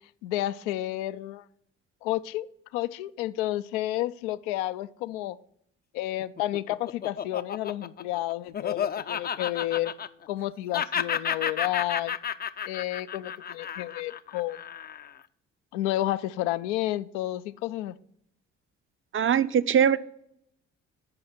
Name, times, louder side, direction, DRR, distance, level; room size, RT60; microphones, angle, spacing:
voice 1, 0.2-1.4 2.0-5.4 5.9-9.9 10.3-12.2 12.7-14.6 15.7-17.9, left 15 dB, 75° left, 15 dB, 0.5 m, -31 dB
Laughter, 6.2-10.4 10.7-15.2, left 8 dB, 25° left, 0.5 m, -32 dB
voice 2, 19.1-20.0, right 8 dB, 35° right, 14 dB, 0.6 m, -21 dB
8.7 x 5.6 x 5.9 m, 0.73 s
hypercardioid pair, 45°, 36 cm